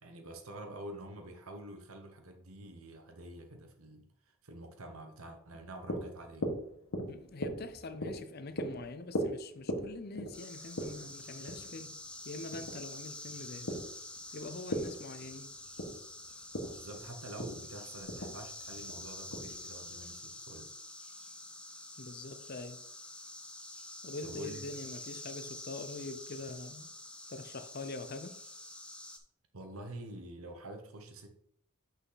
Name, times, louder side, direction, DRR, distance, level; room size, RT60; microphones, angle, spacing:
voice 1, 0.0-6.5 16.7-20.7 24.2-24.6 29.5-31.3, right 1 dB, 85° right, 1.1 m, -47 dB
sound 1, 5.5-20.1, equal, 70° left, 1.5 m, -40 dB
voice 2, 7.1-12.0 12.2-13.8 14.3-15.5 22.0-22.8 24.0-26.9 27.3-28.4, left 3 dB, 45° left, 0.6 m, -44 dB
sound 2, 10.3-29.2, left 2 dB, 5° left, 0.5 m, -47 dB
5.8 x 5.8 x 4.0 m
head